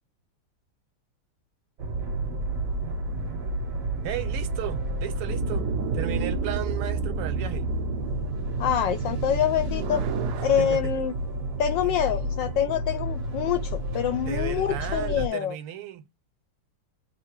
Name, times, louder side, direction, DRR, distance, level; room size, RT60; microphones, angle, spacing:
sound 1, 1.8-15.3, right 1 dB, 45° right, 1.3 m, -31 dB
voice 1, 4.0-7.7 10.4-10.9 11.8-11.9 14.2-16.0, right 11 dB, 90° right, 1.7 m, -35 dB
sound 2, 5.3-10.8, right 5 dB, 75° right, 0.9 m, -31 dB
voice 2, 8.6-10.0 10.4-11.1 11.6-15.5, left 9 dB, 75° left, 1.1 m, -26 dB
3.7 x 2.3 x 4.4 m
omnidirectional pair, 2.4 m